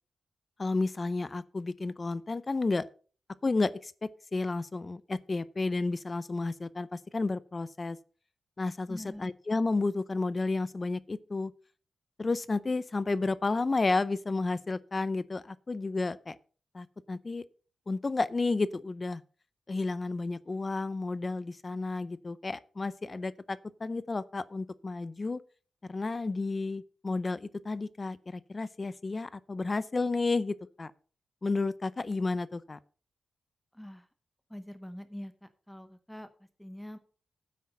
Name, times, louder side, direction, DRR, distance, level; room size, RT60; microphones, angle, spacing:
voice 1, 0.6-2.9 3.4-8.0 8.6-11.5 12.2-16.4 16.7-17.4 17.9-19.2 19.7-25.4 25.9-30.9 31.4-32.8, left 3 dB, 25° left, 0.5 m, -32 dB
voice 2, 8.9-9.3 33.7-34.1 34.5-36.3 36.6-37.0, equal, 5° left, 0.8 m, -44 dB
9.5 x 8.6 x 5.3 m
wide cardioid pair, 150°, 0 cm